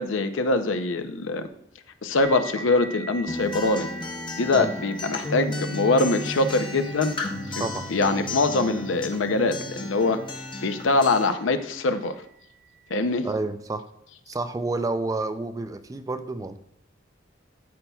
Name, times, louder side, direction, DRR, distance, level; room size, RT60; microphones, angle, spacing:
voice 1, 0.0-1.5 2.0-3.9 4.4-7.2 7.5-10.2 10.6-12.1 12.9-13.3, left 3 dB, 80° left, 9 dB, 0.6 m, -23 dB
sound 1, 2.2-11.5, right 3 dB, 85° right, 2.3 m, -43 dB
Acoustic guitar, 3.3-11.3, left 2 dB, 25° left, 0.7 m, -34 dB
voice 2, 7.6-7.9 13.2-13.9 14.3-16.6, right 2 dB, 20° right, 10 dB, 0.3 m, -29 dB
12.0 x 5.6 x 2.3 m, 0.76 s
head